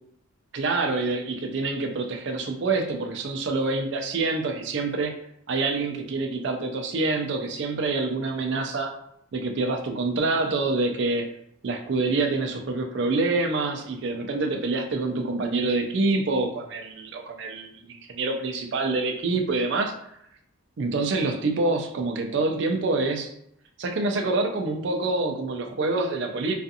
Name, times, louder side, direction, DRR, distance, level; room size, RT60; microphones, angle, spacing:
voice 1, 0.5-5.1 5.5-8.9 9.3-11.3 11.6-19.9 20.8-23.3 23.8-26.6, right 3 dB, 55° right, 4 dB, 0.4 m, -26 dB
2.5 x 2.4 x 2.6 m, 0.73 s
head